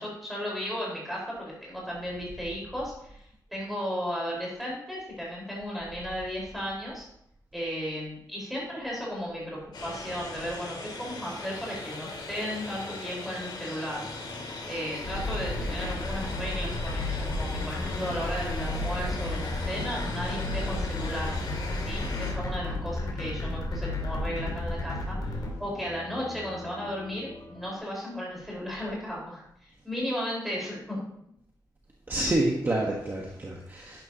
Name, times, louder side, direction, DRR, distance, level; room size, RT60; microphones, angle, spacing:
voice 1, 0.0-3.2 3.5-7.1 7.5-14.0 14.7-21.3 21.8-31.0, equal, ahead, -4 dB, 4.3 m, -35 dB
sound 1, 9.7-22.3, left 3 dB, 85° left, 2.6 m, -39 dB
sound 2, 13.9-27.8, left 2 dB, 35° left, 2.6 m, -47 dB
sound 3, 15.0-25.5, left 2 dB, 60° left, 2.4 m, -32 dB
voice 2, 32.1-34.0, right 1 dB, 25° right, -1 dB, 1.2 m, -28 dB
11.0 x 10.5 x 2.8 m, 0.72 s
wide cardioid pair, 180°, 7 cm